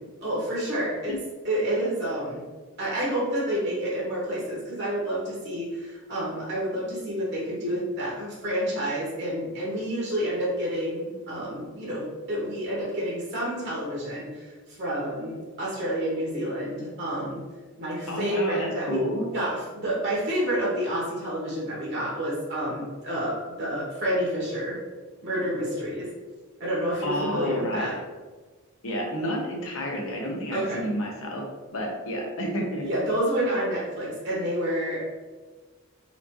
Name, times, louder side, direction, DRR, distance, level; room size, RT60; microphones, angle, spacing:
voice 1, 0.2-1.1 1.4-2.4 2.8-17.4 17.8-19.0 19.3-24.8 25.2-26.1 26.6-27.9 30.5-30.8 32.8-35.0, right 1 dB, 50° right, -6 dB, 1.2 m, -29 dB
voice 2, 18.1-19.3 27.0-28.0 28.8-31.4 31.7-32.9, equal, 65° left, -1 dB, 0.9 m, -30 dB
4.2 x 2.7 x 3.0 m, 1.3 s
head